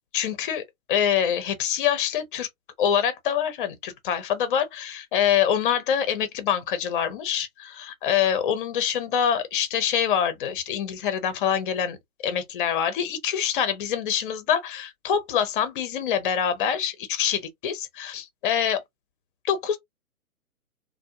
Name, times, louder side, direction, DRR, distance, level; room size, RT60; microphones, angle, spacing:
voice 1, 0.1-0.6 0.9-2.5 2.8-12.0 12.2-18.8 19.4-19.8, left 8 dB, 35° left, 0.6 m, -25 dB
2.4 x 2.1 x 2.8 m
hypercardioid pair, 130°, 45 cm